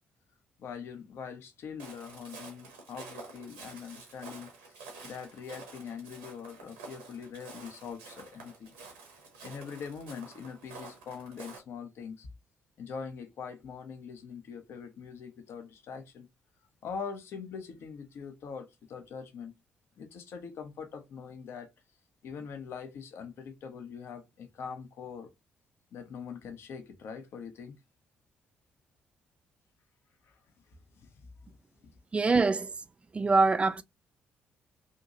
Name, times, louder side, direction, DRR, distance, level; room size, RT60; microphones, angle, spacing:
voice 1, 0.6-4.5 5.0-8.7 9.4-12.3 12.8-16.3 16.8-19.5 20.0-21.7 22.2-25.3 25.9-27.8 30.3-30.4 31.0-31.6, left 6 dB, 55° left, 0.6 m, -43 dB
Walk footsteps, 1.8-11.6, right 3 dB, 75° right, 0.8 m, -49 dB
voice 2, 32.1-32.7 33.1-33.8, right 3 dB, 25° right, 0.3 m, -24 dB
2.7 x 2.6 x 2.5 m
figure-of-eight pair, 40°, 5 cm